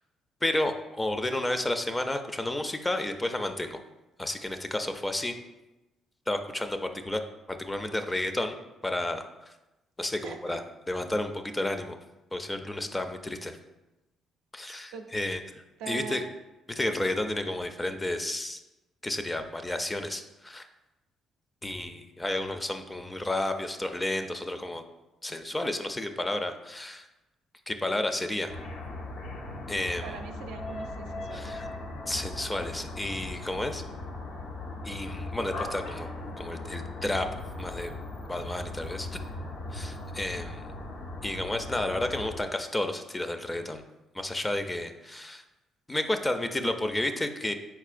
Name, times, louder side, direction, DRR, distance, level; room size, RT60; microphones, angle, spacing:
voice 1, 0.4-3.8 4.2-5.4 6.3-7.2 7.5-8.6 8.8-9.5 10.0-10.6 10.9-12.0 12.3-13.6 14.5-15.4 15.9-16.2 16.7-18.6 19.0-20.6 21.6-24.8 25.2-27.1 27.7-28.5 29.7-30.0 31.3-31.6 32.1-33.8 34.8-36.1 36.4-37.3 37.6-37.9 38.3-39.2 39.7-40.7 41.2-43.8 44.1-45.4 45.9-47.5, left 1 dB, 20° left, 7 dB, 0.4 m, -31 dB
voice 2, 10.2-10.6 14.9-15.1 15.8-16.2 30.0-31.5, right 6 dB, 85° right, 4 dB, 0.4 m, -41 dB
sound 1, 28.5-42.4, left 2 dB, 70° left, 0.6 m, -38 dB
4.6 x 4.1 x 2.5 m, 1.0 s
supercardioid pair, 70°, 0 cm